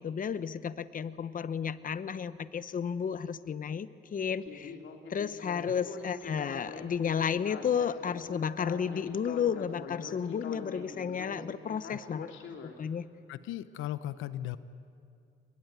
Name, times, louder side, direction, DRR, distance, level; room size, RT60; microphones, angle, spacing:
voice 1, 0.0-4.7 5.1-12.3 12.6-13.1, left 7 dB, 45° left, 14 dB, 1.0 m, -32 dB
Speech synthesizer, 4.4-12.7, left 5 dB, 75° left, 3.3 m, -44 dB
voice 2, 13.3-14.6, left 13 dB, 90° left, 14 dB, 0.9 m, -37 dB
29.5 x 21.5 x 9.2 m, 2.4 s
cardioid pair, 90°, 20 cm